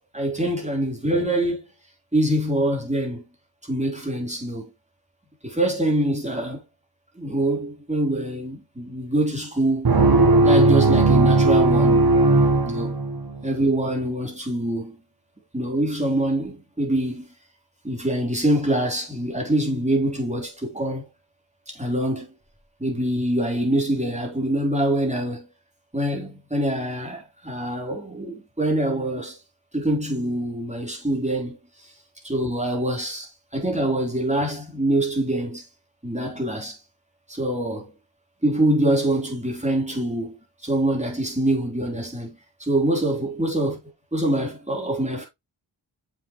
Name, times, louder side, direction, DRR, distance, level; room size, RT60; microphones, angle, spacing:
voice 1, 0.1-1.6 2.1-3.2 3.7-4.7 5.4-6.6 7.2-10.0 10.4-12.1 12.7-13.0 13.4-15.0 15.5-17.3 17.8-21.0 21.7-22.3 22.8-25.5 25.9-29.4 29.7-31.6 32.2-35.7 36.0-36.8 37.3-37.9 38.4-40.3 40.6-43.8 44.1-45.2, right 1 dB, 15° right, 3.9 m, -24 dB
sound 1, 9.8-13.4, right 2 dB, 50° right, 1.3 m, -17 dB
7.1 x 6.3 x 3.2 m
cardioid pair, 55°, 46 cm